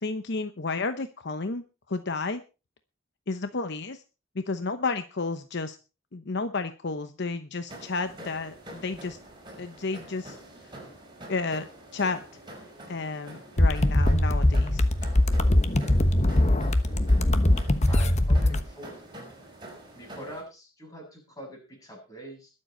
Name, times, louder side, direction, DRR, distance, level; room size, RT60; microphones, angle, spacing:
voice 1, 0.0-2.4 3.3-4.0 4.4-5.8 6.1-9.2 9.6-10.4 11.3-11.6 11.9-12.2 12.9-14.9, left 3 dB, 55° left, 9 dB, 0.9 m, -31 dB
sound 1, 7.7-20.4, right 1 dB, 25° right, 5.4 m, -46 dB
sound 2, 13.6-18.6, left 1 dB, 35° left, 1.1 m, -21 dB
voice 2, 17.9-18.9 19.9-22.5, equal, 20° left, 0 dB, 7.5 m, -43 dB
21.5 x 7.7 x 4.4 m, 0.32 s
head